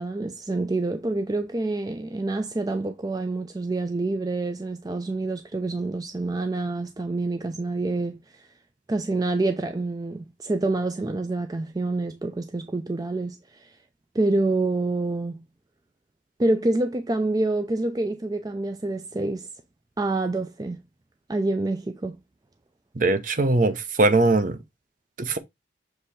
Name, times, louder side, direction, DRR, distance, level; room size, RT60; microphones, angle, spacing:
voice 1, 0.0-8.5 8.9-13.7 14.1-15.4 16.4-19.5 20.0-20.8 21.3-22.2, right 2 dB, 20° right, 0.4 m, -27 dB
voice 2, 22.9-24.6 25.2-25.4, right 2 dB, 45° right, 0.8 m, -21 dB
6.9 x 3.3 x 4.1 m
head